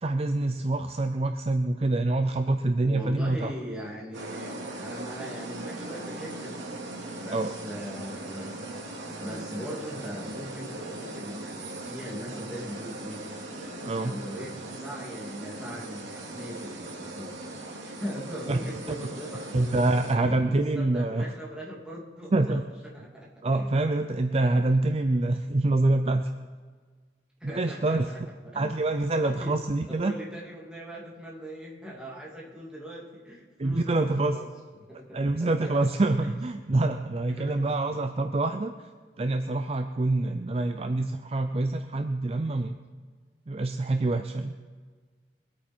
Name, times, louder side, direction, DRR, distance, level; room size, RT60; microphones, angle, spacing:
voice 1, 0.0-3.5 7.3-7.5 13.8-14.2 18.5-18.6 18.9-19.0 19.5-21.2 22.3-22.6 23.4-26.3 27.4-28.1 28.5-30.1 33.6-34.4 35.1-38.7 39.2-42.8 43.5-44.5, right 2 dB, 30° right, 8 dB, 0.5 m, -26 dB
voice 2, 2.8-6.8 7.2-8.6 9.2-17.4 17.8-23.8 27.4-28.7 29.2-29.6 29.9-34.5 34.9-35.9 36.2-36.4 37.3-37.6 37.9-38.0, equal, 5° right, -5 dB, 2.6 m, -40 dB
sound 1, 4.1-20.1, right 2 dB, 80° right, 2.6 m, -39 dB
22.0 x 8.6 x 4.5 m, 1.5 s
head